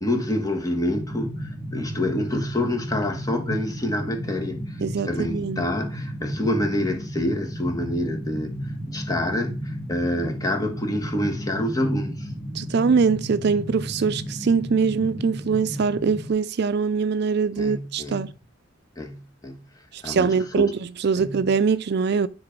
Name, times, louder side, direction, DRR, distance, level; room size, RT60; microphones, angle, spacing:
voice 1, 0.0-4.8 5.0-12.3 17.6-18.3 19.0-19.6 20.0-20.7 21.2-21.4, left 1 dB, 20° left, 1.5 m, -27 dB
sound 1, 0.9-16.3, equal, 15° right, 1.4 m, -33 dB
voice 2, 4.8-5.6 12.5-18.3 19.9-22.3, right 5 dB, 60° right, 0.4 m, -23 dB
9.8 x 4.0 x 5.2 m
head